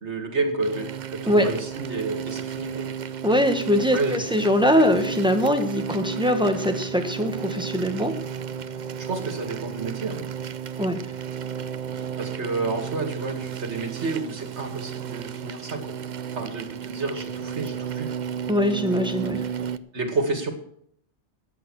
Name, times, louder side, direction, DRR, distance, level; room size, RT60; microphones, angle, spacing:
voice 1, 0.0-2.8 3.9-4.3 9.1-10.2 12.2-15.9 16.3-18.1 19.6-19.7 19.9-20.5, right 3 dB, 75° right, 6 dB, 2.5 m, -30 dB
sound 1, 0.6-19.8, right 7 dB, 50° right, 0.6 m, -33 dB
voice 2, 3.2-8.1 10.8-11.0 18.5-19.4, equal, 5° right, 5 dB, 1.5 m, -22 dB
13.0 x 8.7 x 6.4 m, 0.67 s
omnidirectional pair, 1.2 m